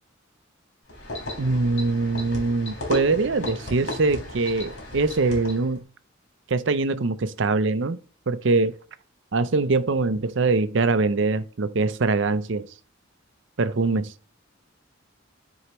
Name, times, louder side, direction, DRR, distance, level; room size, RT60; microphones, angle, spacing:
sound 1, 0.9-5.8, left 1 dB, 60° left, 3.5 m, -35 dB
voice 1, 1.4-5.8 6.5-8.0 8.3-8.7 9.3-12.7 13.6-14.1, right 3 dB, 60° right, 0.6 m, -23 dB
9.9 x 4.6 x 3.0 m
head